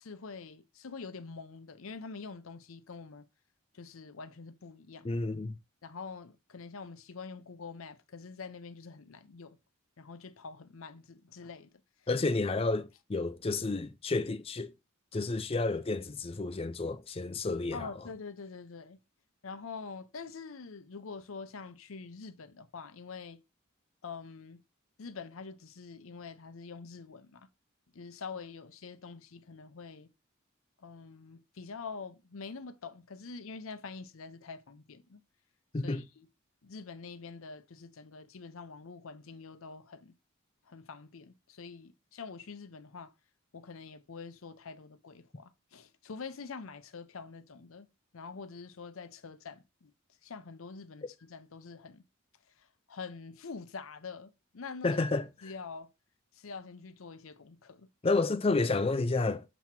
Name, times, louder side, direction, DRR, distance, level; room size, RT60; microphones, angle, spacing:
voice 1, 0.0-3.2 3.7-5.2 5.8-9.6 10.0-11.8 17.7-19.0 19.4-23.4 24.0-24.6 25.0-27.5 27.9-30.1 30.8-35.2 35.8-36.3 36.6-40.1 40.7-43.1 43.5-47.9 48.1-49.9 50.2-52.0 52.6-55.0 55.4-55.9 56.3-57.9, left 4 dB, 80° left, 0.7 m, -45 dB
voice 2, 5.0-5.6 12.1-14.7 15.1-17.9 35.7-36.1 54.8-55.3 58.0-59.4, left 3 dB, 25° left, 0.5 m, -30 dB
7.0 x 3.0 x 6.0 m
head